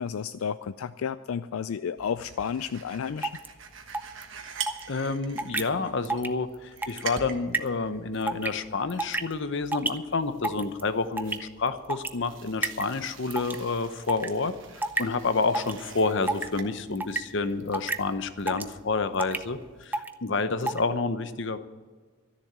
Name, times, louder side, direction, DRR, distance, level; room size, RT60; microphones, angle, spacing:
voice 1, 0.0-3.3, left 7 dB, 80° left, 13 dB, 0.4 m, -32 dB
sound 1, 2.0-19.9, right 6 dB, 60° right, 1.4 m, -45 dB
sound 2, 3.2-3.5 3.9-4.2 4.7-4.8 5.4-5.6 6.0-6.3 6.5-7.0 7.5-7.7 8.3-8.5 8.9-9.3 9.7-9.9 10.4-10.8 11.2-11.4 11.9-12.1 12.6-12.9 13.3-13.6 14.1-14.3 14.8-15.0 15.5-15.8 16.3-16.5 16.9-17.2 17.7-18.0 18.5-18.7 19.2-19.4 19.9-20.1 20.6-20.8, right 2 dB, 10° right, 0.5 m, -28 dB
voice 2, 4.9-21.6, left 3 dB, 60° left, 11 dB, 0.8 m, -29 dB
13.0 x 7.1 x 9.4 m, 1.5 s
head